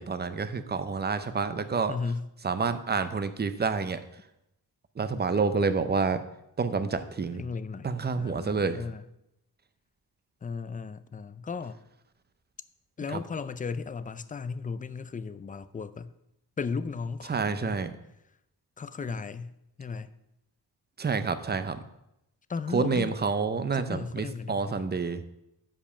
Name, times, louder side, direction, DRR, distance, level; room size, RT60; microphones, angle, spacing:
voice 1, 0.0-1.9 2.4-4.0 5.0-6.2 6.6-7.4 7.8-8.8 13.1-13.2 17.3-17.9 21.0-21.8 22.7-25.2, right 4 dB, 25° right, 0.6 m, -28 dB
voice 2, 1.9-2.3 7.4-9.1 10.4-11.8 13.0-16.1 16.6-17.8 18.8-20.1 22.5-23.1 23.7-24.9, left 5 dB, 20° left, 0.3 m, -36 dB
10.0 x 5.2 x 7.0 m
wide cardioid pair, 175°, 39 cm